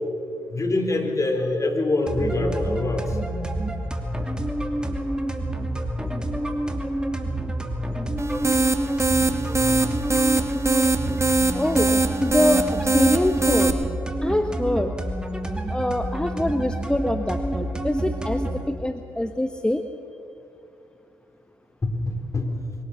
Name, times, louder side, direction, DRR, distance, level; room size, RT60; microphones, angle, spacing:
voice 1, 0.5-3.2 21.8-22.5, left 2 dB, 35° left, 4 dB, 3.8 m, -24 dB
sound 1, 2.1-18.7, right 1 dB, 10° right, 2.9 m, -28 dB
sound 2, 8.2-13.7, right 3 dB, 30° right, 1.8 m, -22 dB
voice 2, 11.5-11.9 12.2-13.8 14.2-14.9 15.7-19.8, left 1 dB, 10° left, 7 dB, 1.2 m, -24 dB
23.0 x 17.0 x 7.0 m, 2.5 s
hypercardioid pair, 45°, 9 cm